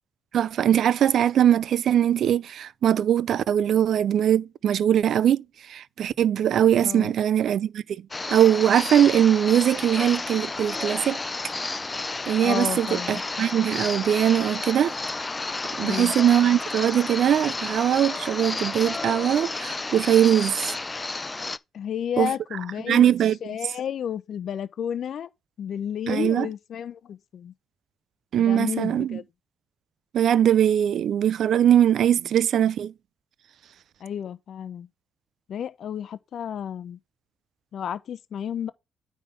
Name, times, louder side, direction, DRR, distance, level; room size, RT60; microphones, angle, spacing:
voice 1, 0.3-11.2 12.3-15.0 15.8-20.8 22.2-22.3 22.9-23.5 26.1-26.5 28.3-29.2 30.1-32.9, right 10 dB, 65° right, 0.4 m, -21 dB
voice 2, 6.8-7.1 12.4-13.2 15.8-16.1 21.7-23.1 23.4-25.3 25.6-27.5 28.4-29.2 34.0-34.9 35.5-37.0 37.7-38.7, left 9 dB, 60° left, 0.8 m, -31 dB
sound 1, 8.1-21.6, left 3 dB, 20° left, 0.4 m, -31 dB
9.3 x 3.6 x 5.2 m
cardioid pair, 90°, 0 cm